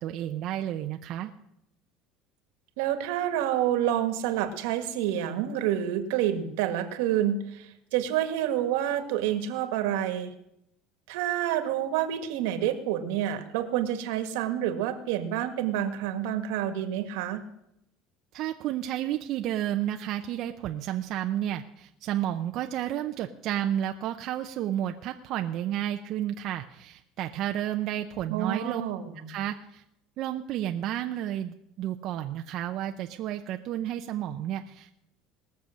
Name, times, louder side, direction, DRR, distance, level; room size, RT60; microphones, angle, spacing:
voice 1, 0.0-1.3 18.3-28.8 29.3-29.8 30.2-34.9, right 12 dB, 50° right, 5 dB, 0.6 m, -31 dB
voice 2, 2.8-10.3 11.1-17.4 28.3-29.3, right 11 dB, 80° right, 9 dB, 1.5 m, -28 dB
19.5 x 6.9 x 6.3 m, 0.80 s
cardioid pair, 140°, 0 cm